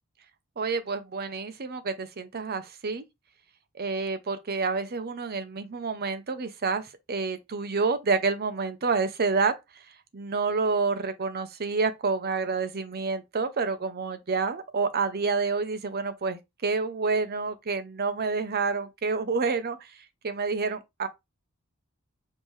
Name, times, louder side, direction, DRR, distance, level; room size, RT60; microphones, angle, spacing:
voice 1, 0.6-3.0 3.7-9.6 10.1-19.9 20.2-21.1, right 4 dB, 45° right, 0.7 m, -28 dB
5.4 x 2.8 x 3.2 m
head